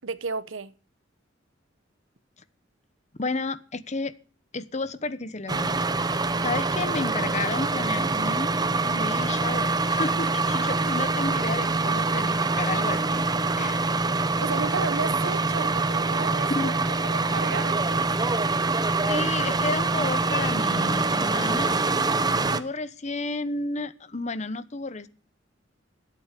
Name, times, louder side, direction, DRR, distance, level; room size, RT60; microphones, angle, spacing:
voice 1, 0.0-0.7 14.4-18.1, right 4 dB, 85° right, 0.9 m, -33 dB
voice 2, 3.2-4.1 4.5-5.7 6.4-13.3 13.6-13.9 16.5-17.0 19.1-21.8 22.5-25.1, left 3 dB, 35° left, 1.0 m, -32 dB
sound 1, 5.5-22.6, right 3 dB, 20° right, 0.8 m, -25 dB
14.0 x 8.8 x 8.2 m
head